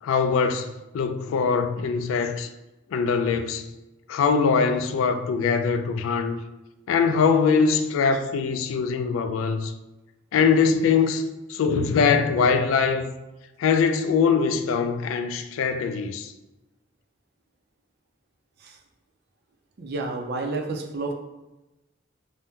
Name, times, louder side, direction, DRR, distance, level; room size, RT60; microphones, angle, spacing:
voice 1, 0.0-2.5 2.9-3.7 4.1-6.4 6.9-9.7 10.3-13.1 13.6-16.3, left 5 dB, 90° left, 0.3 m, -22 dB
voice 2, 19.8-21.1, right 3 dB, 55° right, 0.5 m, -30 dB
2.7 x 2.1 x 3.5 m
head